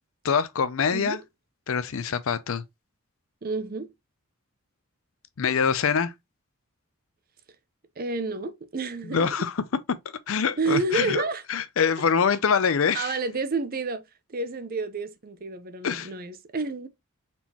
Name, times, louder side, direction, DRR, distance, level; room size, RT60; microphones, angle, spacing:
voice 1, 0.2-1.2 1.7-2.6 5.4-6.1 9.0-9.6 10.3-11.2 11.5-13.1 15.8-16.1, left 6 dB, 60° left, 0.5 m, -24 dB
voice 2, 3.4-3.9 8.0-9.2 10.6-11.4 12.9-14.0 14.3-16.9, right 3 dB, 40° right, 0.6 m, -29 dB
4.2 x 3.6 x 2.8 m
head